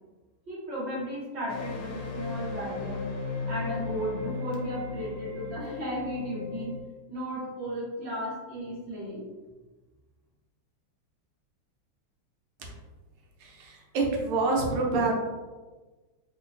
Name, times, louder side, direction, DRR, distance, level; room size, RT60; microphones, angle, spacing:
voice 1, 0.5-3.1 3.5-6.7 7.1-9.2, equal, 45° right, -6 dB, 0.8 m, -35 dB
sound 1, 1.5-6.8, left 3 dB, 75° left, 1.3 m, -36 dB
voice 2, 13.6-15.2, right 3 dB, 80° right, 0 dB, 1.6 m, -26 dB
3.7 x 2.8 x 2.6 m, 1.3 s
omnidirectional pair, 2.4 m